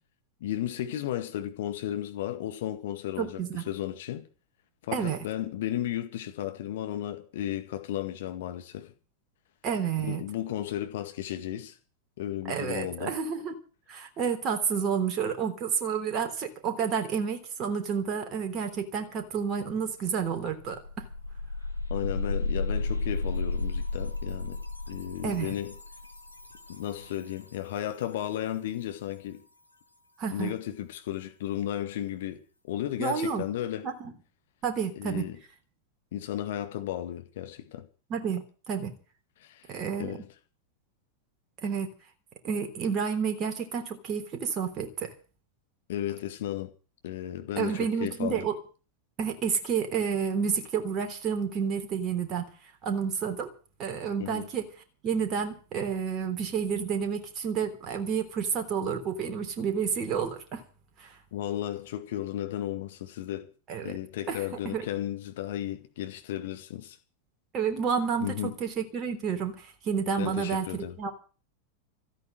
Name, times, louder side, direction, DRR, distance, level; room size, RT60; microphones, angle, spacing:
voice 1, 0.4-3.4 3.7-4.2 4.8-8.9 10.0-11.8 12.2-13.1 21.9-24.6 24.9-25.7 26.7-29.4 30.3-32.4 32.7-33.9 35.0-35.4 36.1-37.9 39.4-39.6 40.0-40.3 45.9-46.7 47.0-48.4 54.2-54.5 61.3-63.5 63.8-67.0 68.2-68.5 70.2-71.0, left 12 dB, 55° left, 1.9 m, -34 dB
voice 2, 3.2-3.7 4.9-5.2 9.6-10.2 12.4-13.5 13.9-21.1 25.2-25.5 30.2-30.5 33.0-33.4 33.8-34.1 34.6-35.2 38.1-38.9 39.7-40.2 41.6-41.9 42.4-45.1 47.6-48.6 49.2-52.5 52.8-53.5 53.8-54.7 55.0-60.6 61.0-61.2 63.7-64.0 64.3-64.9 67.5-71.1, right 6 dB, 30° right, 3.4 m, -30 dB
sound 1, 20.1-20.2 20.5-27.3, left 3 dB, 85° left, 1.7 m, -33 dB
14.5 x 9.3 x 9.0 m
figure-of-eight pair, 90°, 0 cm